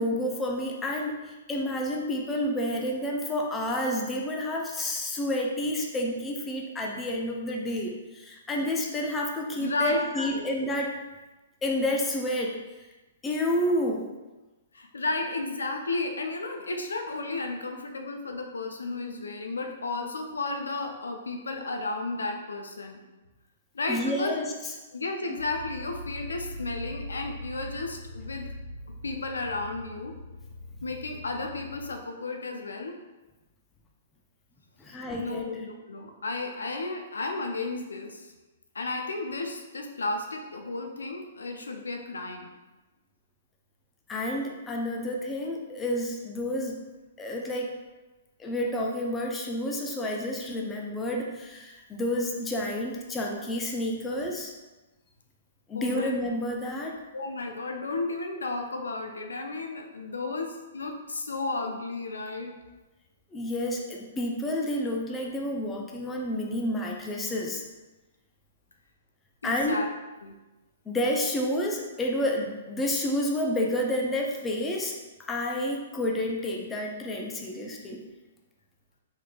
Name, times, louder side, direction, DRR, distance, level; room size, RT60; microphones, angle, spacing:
voice 1, 0.0-10.9 11.6-12.6 13.2-14.1 23.9-24.7 34.8-35.6 44.1-46.8 47.2-47.7 48.4-54.5 55.7-56.9 63.3-67.6 69.4-69.8 70.9-75.0 75.3-78.0, left 1 dB, 15° left, 0 dB, 0.5 m, -30 dB
voice 2, 9.6-10.4 14.7-23.0 23.7-24.4 24.9-28.5 29.0-30.2 30.8-33.0 34.9-38.3 38.7-42.5 55.7-56.1 57.1-62.5 69.4-69.9 70.2-70.4, left 3 dB, 90° left, 3 dB, 0.4 m, -33 dB
sound 1, 25.4-31.9, left 1 dB, 75° right, 1.4 m, -41 dB
3.5 x 3.1 x 2.3 m, 1.1 s
hypercardioid pair, 125°, 0 cm